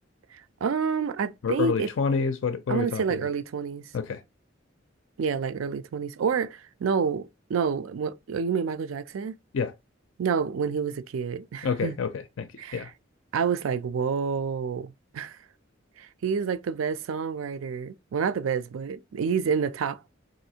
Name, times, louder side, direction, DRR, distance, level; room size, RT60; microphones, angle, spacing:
voice 1, 0.3-1.9 2.7-3.9 5.2-9.3 10.2-12.0 12.6-12.9 13.3-15.4 16.0-20.0, right 6 dB, 90° right, 0.4 m, -28 dB
voice 2, 1.4-3.2 3.9-4.2 9.5-9.7 11.6-12.5 12.7-12.9, left 5 dB, 80° left, 0.4 m, -28 dB
4.0 x 2.6 x 2.7 m
head